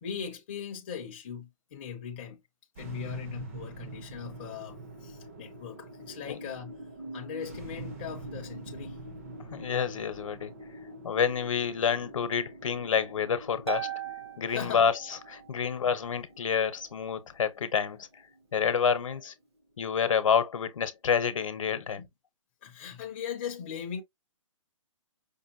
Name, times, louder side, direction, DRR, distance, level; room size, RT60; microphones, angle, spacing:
voice 1, 0.0-2.4 2.8-6.7 7.1-9.0 14.5-14.8 22.0-22.1 22.6-24.0, left 8 dB, 20° left, 0.5 m, -39 dB
sound 1, 2.8-19.2, right 2 dB, 25° right, 0.6 m, -45 dB
voice 2, 9.5-10.5 11.0-13.9 14.4-18.1 18.5-19.3 19.8-22.0, left 7 dB, 75° left, 0.8 m, -28 dB
Harp, 13.7-15.5, right 10 dB, 50° right, 0.9 m, -38 dB
5.3 x 2.2 x 2.6 m
hypercardioid pair, 175°, 17 cm